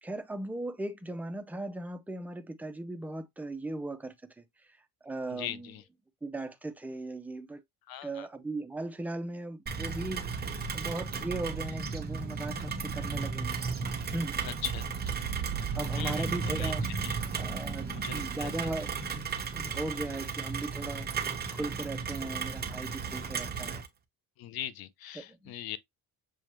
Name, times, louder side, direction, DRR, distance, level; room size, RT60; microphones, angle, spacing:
voice 1, 0.0-4.4 5.0-5.8 6.2-7.6 8.0-10.2 10.7-13.6 14.1-14.4 15.7-16.8 17.4-19.2 19.5-21.1 21.5-23.8 25.1-25.5, right 2 dB, 5° right, 0.5 m, -38 dB
voice 2, 5.3-5.8 7.9-8.3 14.4-14.8 15.9-16.7 17.0-17.2 17.9-18.5 24.4-25.8, left 12 dB, 75° left, 0.7 m, -40 dB
Rain, 9.7-23.9, right 5 dB, 25° right, 1.0 m, -34 dB
7.0 x 2.3 x 3.0 m
cardioid pair, 125°, 36 cm